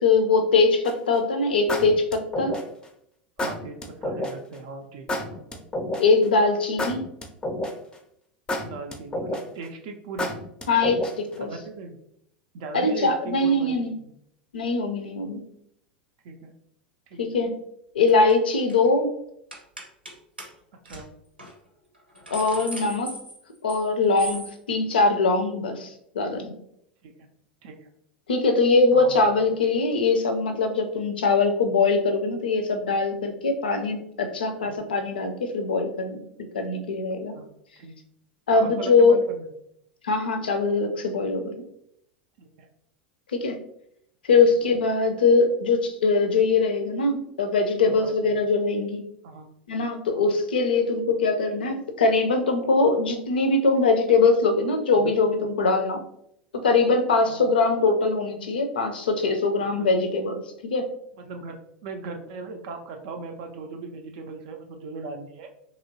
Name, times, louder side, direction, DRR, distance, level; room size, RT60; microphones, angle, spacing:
voice 1, 0.0-2.5 6.0-7.0 10.7-11.5 12.7-13.9 14.5-15.5 17.2-17.5 17.9-19.1 22.3-23.1 23.6-26.5 28.3-36.2 36.5-37.4 38.5-39.2 40.0-41.5 43.3-43.6 44.3-49.0 49.7-56.0 56.6-60.9, left 3 dB, 70° left, 6 dB, 0.5 m, -22 dB
sound 1, 0.8-1.1 1.7-2.8 3.4-4.3 5.1-6.2 6.8-7.9 8.5-9.6 10.2-11.3, left 1 dB, 15° left, 0.4 m, -29 dB
voice 2, 3.4-5.6 8.6-10.3 11.4-12.0 12.5-14.1 16.2-16.5 17.1-17.2 20.8-21.1 27.0-27.3 27.6-27.9 28.9-29.5 34.6-34.8 37.3-37.5 37.8-38.0 38.5-39.5 42.4-42.7 44.3-44.4 47.8-48.4 49.2-49.5 50.1-50.3 55.0-55.2 57.2-57.4 59.8-59.9 61.2-61.6 61.8-65.5, right 3 dB, 50° right, 4 dB, 0.4 m, -38 dB
sound 2, 18.1-18.3 18.6-18.9 19.5-20.1 20.4-20.5 20.9-21.0 21.4-21.5 21.9-23.9 24.2-24.5, right 1 dB, 90° right, 0.7 m, -38 dB
3.0 x 2.9 x 2.6 m, 0.75 s
figure-of-eight pair, 85°, 5 cm